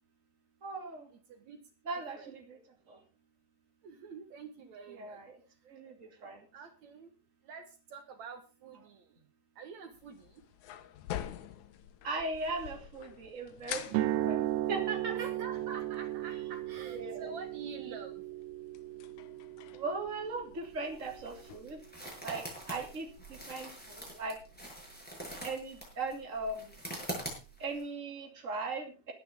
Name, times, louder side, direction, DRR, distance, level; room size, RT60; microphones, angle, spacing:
voice 1, 0.6-1.1 1.8-2.6 2.9-3.0 4.9-5.4 5.7-6.5 12.0-15.3 16.9-17.3 19.7-21.8 22.2-24.4 25.2-26.7 27.6-29.1, right 3 dB, 25° right, 2 dB, 3.0 m, -39 dB
voice 2, 1.3-1.6 2.2-2.3 3.8-5.2 6.5-7.1 7.4-7.6 7.9-9.0 9.6-10.4 15.1-18.2, right 5 dB, 70° right, 6 dB, 2.8 m, -47 dB
sound 1, 9.9-21.6, left 11 dB, 80° left, 2.4 m, -48 dB
sound 2, 13.9-21.9, right 14 dB, 90° right, 2.3 m, -36 dB
sound 3, 20.6-27.8, right 1 dB, 5° left, 6.6 m, -44 dB
20.5 x 9.7 x 3.7 m, 0.32 s
omnidirectional pair, 3.4 m